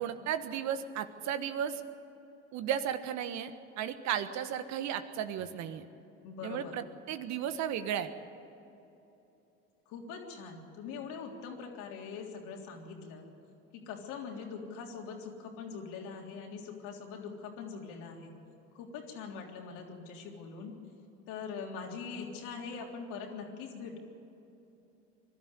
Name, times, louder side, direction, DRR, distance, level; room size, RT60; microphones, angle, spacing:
voice 1, 0.0-1.8 2.5-3.5 3.8-5.8 6.4-8.1, right 9 dB, 60° right, 10 dB, 1.4 m, -34 dB
voice 2, 6.2-6.7 9.9-13.3 13.7-18.3 18.7-20.7 21.3-24.0, left 5 dB, 70° left, 1 dB, 3.5 m, -42 dB
22.0 x 12.5 x 9.9 m, 2.9 s
hypercardioid pair, 70°, 32 cm